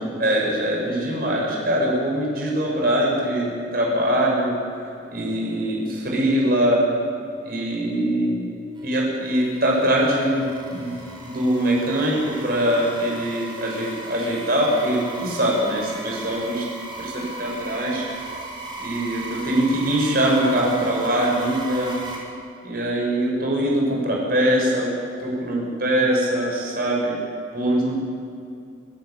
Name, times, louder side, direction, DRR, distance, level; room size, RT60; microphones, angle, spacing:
voice 1, 0.2-4.5 5.1-6.8 7.4-8.4 8.8-16.6 17.0-18.1 18.8-21.9 22.6-24.9 25.2-27.2 27.5-28.0, right 1 dB, 50° right, -2 dB, 6.8 m, -22 dB
sound 1, 8.8-22.2, right 3 dB, 25° right, 5.1 m, -37 dB
26.0 x 15.0 x 8.5 m, 2.7 s
head